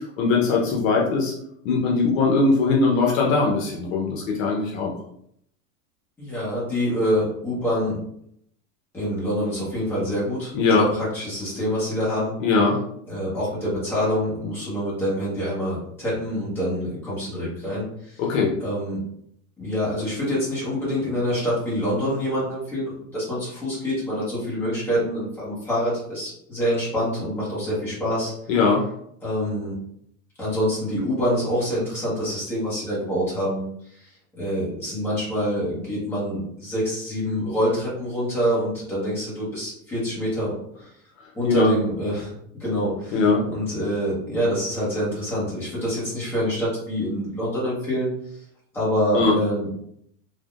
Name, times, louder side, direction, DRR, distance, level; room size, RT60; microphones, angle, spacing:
voice 1, 0.2-1.3 1.6-4.9 10.5-10.9 12.4-12.8 18.2-18.5 28.5-28.8 41.5-41.7 43.1-43.4 49.1-49.3, left 4 dB, 70° left, -1 dB, 0.7 m, -20 dB
voice 2, 6.2-8.0 8.9-12.3 13.1-18.2 18.6-19.0 19.6-28.3 29.2-29.8 30.4-40.9 41.3-48.4 48.7-49.7, equal, 5° left, -8 dB, 0.7 m, -26 dB
3.4 x 2.1 x 2.3 m, 0.70 s
supercardioid pair, 175°, 41 cm